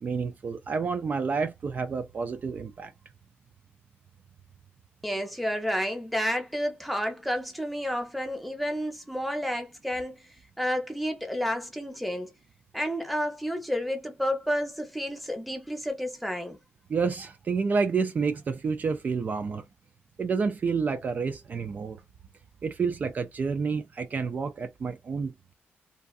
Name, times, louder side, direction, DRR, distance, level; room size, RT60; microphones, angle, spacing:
voice 1, 0.0-2.9 16.9-19.6 20.2-22.0 22.6-25.5, right 5 dB, 40° right, 0.3 m, -29 dB
voice 2, 5.0-10.3 10.6-12.3 12.7-16.6, equal, ahead, 0.8 m, -30 dB
2.5 x 2.4 x 2.4 m
cardioid pair, 95°, 4 cm